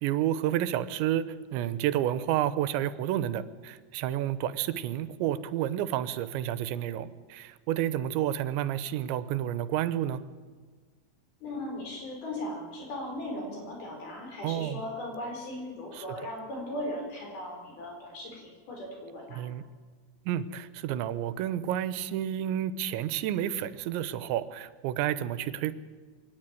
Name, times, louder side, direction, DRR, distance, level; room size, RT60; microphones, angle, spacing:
voice 1, 0.0-1.3 1.5-10.2 14.4-14.8 15.9-16.0 19.3-19.6 20.3-25.7, right 11 dB, 85° right, 14 dB, 3.2 m, -30 dB
voice 2, 11.4-19.4, left 1 dB, 55° left, 1 dB, 7.0 m, -38 dB
23.5 x 18.0 x 9.1 m, 1.4 s
omnidirectional pair, 5.1 m